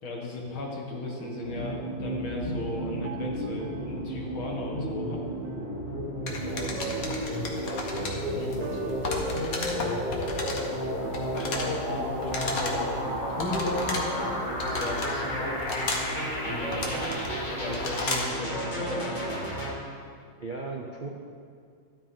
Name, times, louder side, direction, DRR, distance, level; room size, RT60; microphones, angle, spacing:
voice 1, 0.0-5.2 8.3-8.5 11.0-15.6 16.5-17.2 17.5-19.1, left 2 dB, 80° left, -1 dB, 2.6 m, -36 dB
sound 1, 0.7-19.7, right 7 dB, 70° right, 1.3 m, -43 dB
sound 2, 1.4-19.7, equal, 25° left, 1.8 m, -32 dB
sound 3, 6.3-18.4, left 3 dB, 50° left, 1.6 m, -35 dB
voice 2, 6.3-9.0 9.3-9.4 9.7-10.9 20.4-21.1, right 3 dB, 50° right, -2 dB, 0.6 m, -40 dB
12.5 x 12.5 x 3.9 m, 2.2 s
omnidirectional pair, 2.2 m